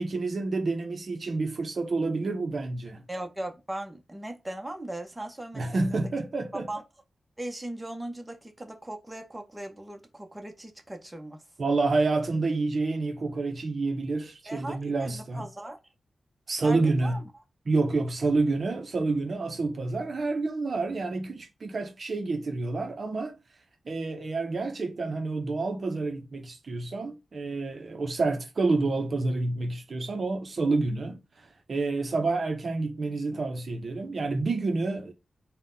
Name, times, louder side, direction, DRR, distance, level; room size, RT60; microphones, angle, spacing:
voice 1, 0.0-3.0 5.5-6.7 11.6-15.5 16.5-17.2 17.7-23.4 23.9-35.1, right 3 dB, 50° right, 0.5 m, -28 dB
voice 2, 3.1-6.1 6.7-6.8 7.4-11.4 14.5-15.8 16.6-17.2, right 1 dB, 10° right, 0.7 m, -38 dB
3.9 x 2.1 x 3.8 m
wide cardioid pair, 110°, 0 cm